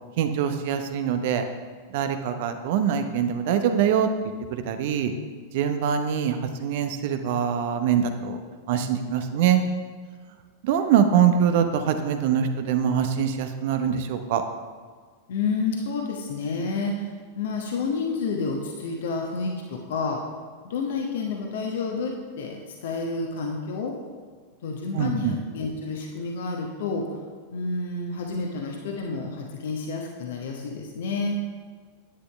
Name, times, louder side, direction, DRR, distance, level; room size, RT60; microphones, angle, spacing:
voice 1, 0.2-1.5 1.9-4.1 4.5-5.1 5.5-8.4 8.7-9.6 10.6-14.4 24.9-25.3, right 8 dB, 50° right, 7 dB, 0.8 m, -23 dB
voice 2, 15.3-17.1 17.4-20.2 20.6-24.0 24.6-27.1 27.5-31.4, left 4 dB, 60° left, 1 dB, 1.1 m, -29 dB
10.0 x 9.7 x 3.4 m, 1.5 s
figure-of-eight pair, 90°, 0 cm